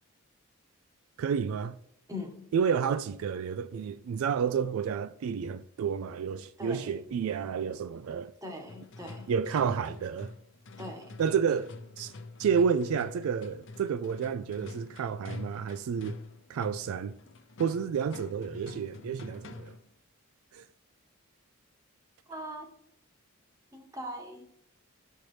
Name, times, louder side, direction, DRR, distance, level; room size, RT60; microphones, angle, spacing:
voice 1, 1.2-1.8 2.5-8.3 9.3-10.3 11.2-11.7 12.0-12.1 12.4-16.2 16.5-17.1 17.6-19.7 20.5-20.7, right 7 dB, 75° right, 0.3 m, -30 dB
voice 2, 2.1-2.5 6.6-6.9 8.4-9.3 10.8-11.2 22.3-22.7 23.7-24.5, left 1 dB, 15° right, 1.0 m, -41 dB
sound 1, 8.7-19.9, left 3 dB, 60° left, 0.6 m, -46 dB
11.5 x 4.4 x 3.2 m
head